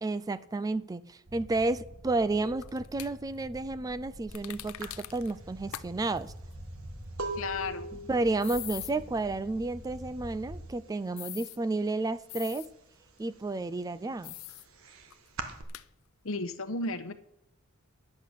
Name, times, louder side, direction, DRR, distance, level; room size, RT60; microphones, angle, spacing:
voice 1, 0.0-6.3 8.1-12.7 13.2-14.4, right 2 dB, 15° right, 16 dB, 0.3 m, -31 dB
sound 1, 1.3-10.7, equal, 35° right, 1.7 m, -47 dB
sound 2, 2.6-3.1 4.3-5.3 5.7-5.9 6.2-6.3 8.4-8.9 11.2-11.6 12.3-12.7 14.2-14.7 15.1-15.2 15.7-15.9, left 16 dB, 90° left, 0.5 m, -42 dB
sound 3, 4.3-4.4 4.8-10.5 10.7-11.2 11.5-12.7 13.1-15.6, right 2 dB, 80° right, 1.5 m, -41 dB
voice 2, 7.4-7.9 16.2-17.1, left 3 dB, 70° left, 11 dB, 1.0 m, -33 dB
10.5 x 8.4 x 6.6 m, 0.79 s
head